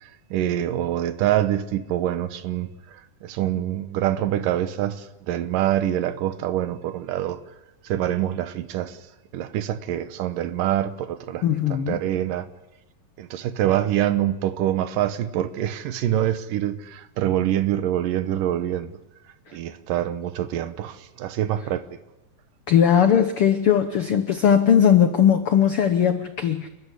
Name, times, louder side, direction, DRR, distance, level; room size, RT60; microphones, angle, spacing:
voice 1, 0.0-7.4 7.8-9.0 9.3-12.5 13.2-19.0 19.5-21.8, right 12 dB, 75° right, 2.6 m, -25 dB
voice 2, 11.4-12.0 22.7-26.7, left 8 dB, 75° left, 1.3 m, -19 dB
29.0 x 13.0 x 9.9 m
omnidirectional pair, 4.0 m